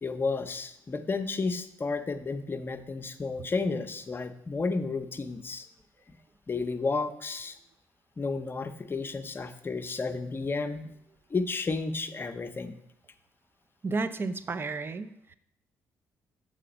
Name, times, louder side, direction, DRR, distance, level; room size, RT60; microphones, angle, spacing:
voice 1, 0.0-5.7 6.5-7.6 8.2-10.9 11.3-12.8, left 4 dB, 30° left, 8 dB, 0.6 m, -32 dB
voice 2, 13.8-15.3, right 3 dB, 35° right, 13 dB, 0.5 m, -32 dB
6.6 x 4.9 x 5.1 m, 0.77 s
supercardioid pair, 60°, 7 cm